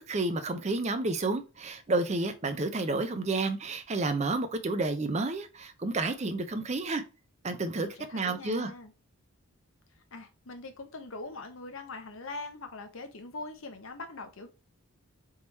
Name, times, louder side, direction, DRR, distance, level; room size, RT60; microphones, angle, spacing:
voice 1, 0.0-7.0 7.4-8.7, right 2 dB, 30° right, 0.5 m, -30 dB
voice 2, 7.8-8.9 10.1-14.5, left 3 dB, 65° left, 0.8 m, -42 dB
3.6 x 2.9 x 4.1 m
head